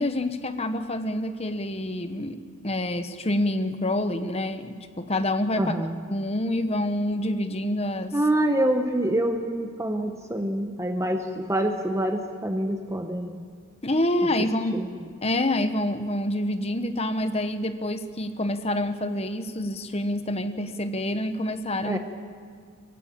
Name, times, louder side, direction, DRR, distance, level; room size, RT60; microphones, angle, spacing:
voice 1, 0.0-2.4 2.6-5.7 6.1-8.1 13.8-14.8 15.2-22.0, left 1 dB, 30° left, 9 dB, 1.1 m, -27 dB
voice 2, 5.6-6.0 8.1-13.4 14.7-14.9 21.8-22.0, right 1 dB, 15° right, 5 dB, 0.9 m, -26 dB
21.0 x 16.0 x 8.8 m, 2.1 s
head